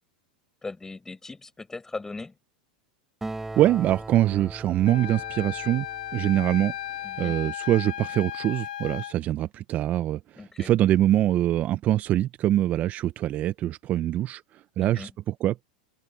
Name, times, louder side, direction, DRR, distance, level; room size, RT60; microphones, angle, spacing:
voice 1, 0.6-2.3 7.0-7.4 10.3-10.7 14.8-15.1, left 3 dB, 10° left, 5.5 m, -39 dB
Acoustic guitar, 3.2-7.0, right 2 dB, 10° right, 6.4 m, -40 dB
voice 2, 3.6-5.9 6.1-6.7 7.2-15.6, right 13 dB, 40° right, 0.8 m, -24 dB
Wind instrument woodwind instrument, 4.9-9.1, left 12 dB, 80° left, 1.2 m, -35 dB
open air
hypercardioid pair, 105°, 4 cm